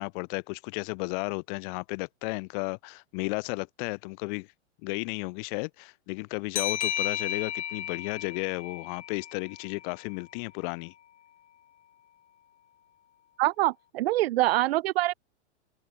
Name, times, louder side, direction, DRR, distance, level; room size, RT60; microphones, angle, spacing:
voice 1, 0.0-4.5 4.8-10.9, left 31 dB, 45° left, 2.3 m, -34 dB
sound 1, 6.5-9.9, left 10 dB, 75° left, 4.5 m, -33 dB
voice 2, 13.4-15.1, right 17 dB, 60° right, 1.2 m, -25 dB
open air
hypercardioid pair, 135°, 35 cm